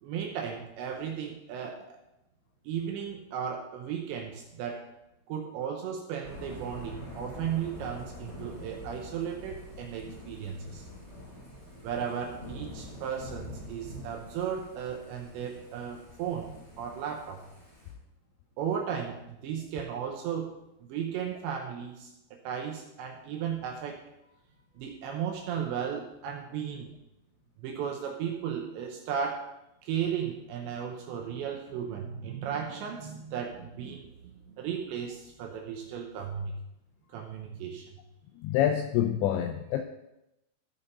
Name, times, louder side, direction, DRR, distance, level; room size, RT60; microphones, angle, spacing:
voice 1, 0.0-2.0 2.6-4.9 5.3-10.9 11.8-17.4 18.6-20.5 20.8-22.1 22.4-24.0 24.8-27.0 27.6-29.5 29.8-36.5 37.1-37.9, right 8 dB, 75° right, 2 dB, 2.9 m, -35 dB
Thunder / Rain, 6.2-17.9, left 1 dB, 10° left, 3.0 m, -45 dB
voice 2, 38.4-39.8, left 11 dB, 85° left, 6 dB, 2.6 m, -27 dB
14.5 x 5.7 x 4.0 m, 0.90 s
omnidirectional pair, 5.7 m